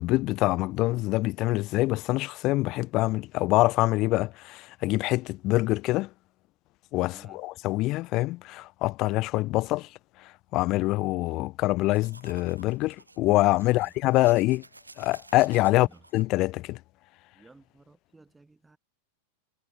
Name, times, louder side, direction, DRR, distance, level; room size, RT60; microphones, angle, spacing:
voice 1, 0.0-6.1 6.9-9.9 10.5-14.6 15.0-15.9 16.1-16.8, left 19 dB, 40° left, 0.4 m, -25 dB
voice 2, 7.1-7.4 13.6-14.3 15.7-16.0 17.3-18.8, right 3 dB, 10° right, 7.0 m, -54 dB
sound 1, 11.9-16.2, right 2 dB, 80° right, 3.6 m, -53 dB
figure-of-eight pair, 90°, 0 cm